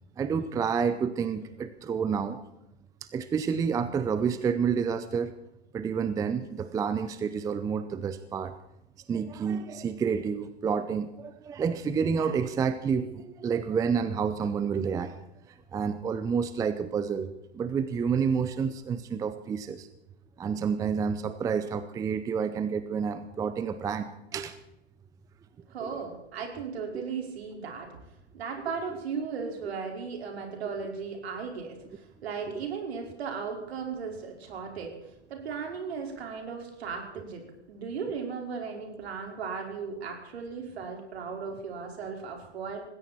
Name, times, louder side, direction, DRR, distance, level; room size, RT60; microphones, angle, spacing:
voice 1, 0.2-2.4 3.1-5.3 5.7-8.5 9.1-15.2 15.7-17.3 17.5-19.9 20.4-24.5 25.8-26.0, right 6 dB, 10° right, 12 dB, 0.6 m, -29 dB
voice 2, 25.7-27.9 28.3-34.9 35.3-37.4 37.7-42.8, right 5 dB, 60° right, 2 dB, 5.0 m, -36 dB
20.0 x 16.5 x 4.4 m, 0.87 s
figure-of-eight pair, 110°, 35 cm